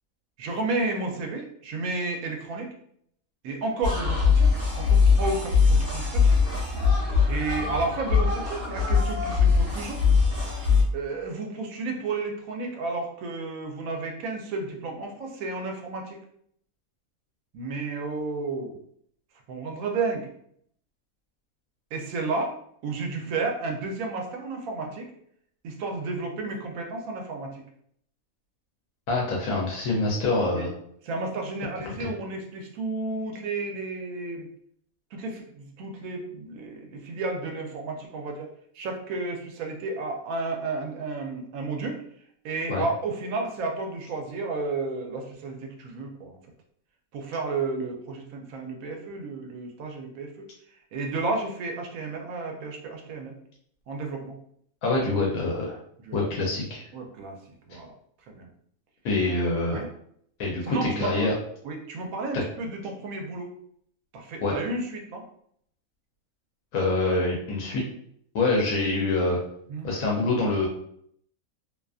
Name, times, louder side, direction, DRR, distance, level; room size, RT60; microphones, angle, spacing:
voice 1, 0.4-2.7 3.4-6.4 7.3-10.0 10.9-16.2 17.5-18.8 19.5-20.3 21.9-22.6 22.8-25.1 25.6-27.6 30.4-30.7 31.0-34.5 35.1-38.5 38.7-42.0 42.4-46.4 47.1-53.3 53.9-54.3 56.0-56.2 56.9-57.4 57.7-57.9 58.3-58.5 59.7-59.9 60.6-61.3 61.6-63.5 64.1-65.3 69.7-69.9, right 3 dB, 75° right, 2 dB, 1.0 m, -32 dB
sound 1, 3.8-10.8, left 5 dB, 50° right, 1.0 m, -22 dB
voice 2, 29.1-30.7 31.8-32.1 42.7-42.8 54.8-55.8 56.1-56.9 57.7-57.8 59.0-59.8 60.4-61.3 62.3-62.4 64.4-64.5 66.7-67.8 68.3-69.4 69.8-70.7, left 2 dB, 80° left, -3 dB, 1.0 m, -25 dB
2.7 x 2.3 x 2.3 m, 0.68 s
omnidirectional pair, 1.5 m